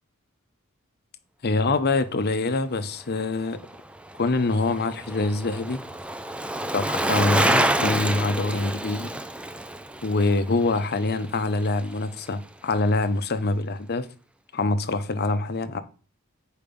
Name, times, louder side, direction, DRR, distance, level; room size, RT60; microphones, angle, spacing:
voice 1, 1.4-3.6 4.2-5.8 6.7-9.1 10.0-14.1 14.5-15.8, left 3 dB, 50° left, 0.7 m, -25 dB
Bicycle, 3.5-12.0 12.3-12.4, right 1 dB, 5° right, 0.4 m, -28 dB
8.7 x 4.7 x 5.3 m
head